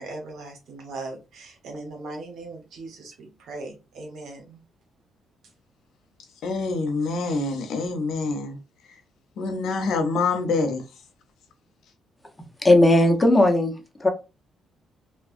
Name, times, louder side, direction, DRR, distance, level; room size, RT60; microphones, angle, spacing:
voice 1, 0.0-4.6, right 2 dB, 75° right, 1.1 m, -39 dB
voice 2, 6.4-8.6 9.4-10.8, left 3 dB, 75° left, 0.8 m, -26 dB
voice 3, 12.6-13.7 14.0-14.1, left 1 dB, 15° left, 0.8 m, -16 dB
3.1 x 2.3 x 2.5 m
cardioid pair, 90°, 0 cm